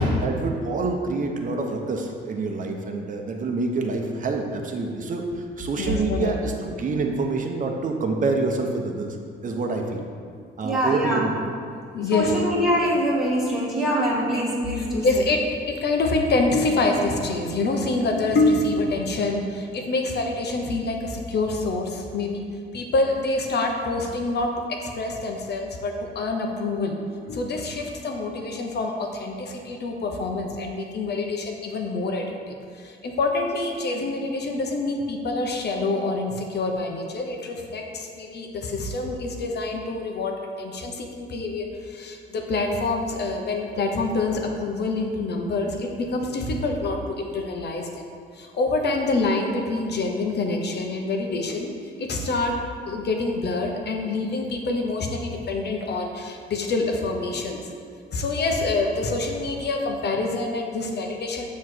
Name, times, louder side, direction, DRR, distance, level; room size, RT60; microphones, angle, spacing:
voice 1, 0.2-9.2 9.4-10.1 10.6-11.4, right 3 dB, 40° right, 2 dB, 0.8 m, -27 dB
voice 2, 5.8-6.3 11.9-12.4 14.8-22.4 22.7-26.9 27.2-48.0 48.3-51.7 52.0-52.6 52.9-57.6 58.1-61.5, left 3 dB, 55° left, 2 dB, 0.9 m, -26 dB
voice 3, 10.6-11.2 12.1-15.1, equal, ahead, -7 dB, 1.6 m, -23 dB
7.2 x 3.1 x 6.1 m, 2.3 s
cardioid pair, 90°, 20 cm